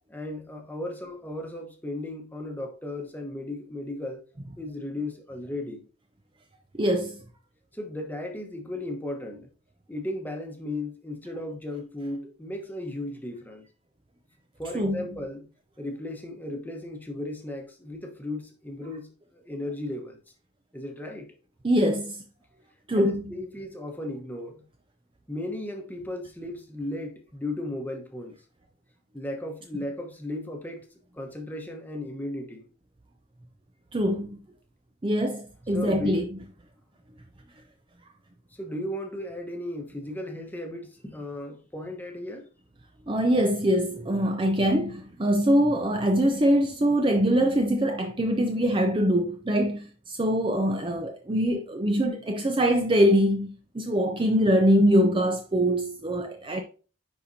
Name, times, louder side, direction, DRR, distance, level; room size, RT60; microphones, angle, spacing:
voice 1, 0.1-4.2 4.6-5.8 7.7-9.5 9.9-13.7 14.6-15.4 15.8-19.1 19.3-20.2 20.7-21.3 23.0-24.6 25.3-28.3 29.1-30.9 31.1-32.7 35.7-36.3 38.6-42.4, left 1 dB, 10° left, 1.0 m, -35 dB
voice 2, 6.8-7.2 14.7-15.2 21.6-22.2 22.9-23.3 33.9-34.4 35.0-36.3 43.1-56.6, equal, 25° right, 0.5 m, -23 dB
10.0 x 4.2 x 2.7 m
head